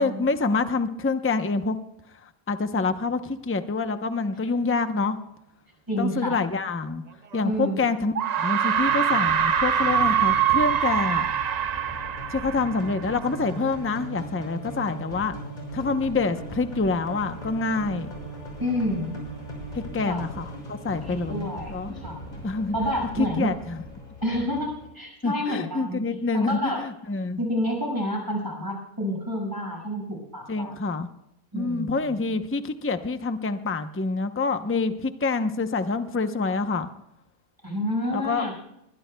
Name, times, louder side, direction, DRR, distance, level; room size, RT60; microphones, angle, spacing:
voice 1, 0.0-1.8 2.5-5.2 6.0-7.0 7.3-11.3 12.3-15.4 15.7-18.1 19.9-22.0 22.4-22.7 23.2-23.8 25.2-27.4 30.5-31.1 31.5-36.9 38.1-38.5, left 3 dB, 15° left, 9 dB, 0.5 m, -26 dB
voice 2, 5.9-6.4 7.4-7.9 18.6-19.2 20.0-20.2 21.0-22.2 22.7-23.5 24.2-26.8 27.4-30.7 31.5-32.2 37.6-38.5, equal, 15° right, 0 dB, 5.5 m, -29 dB
sound 1, 7.3-7.4 8.1-13.4, right 9 dB, 80° right, 0.3 m, -24 dB
sound 2, 8.7-24.9, right 1 dB, 30° left, 5.8 m, -39 dB
21.0 x 20.5 x 2.3 m, 0.84 s
omnidirectional pair, 1.5 m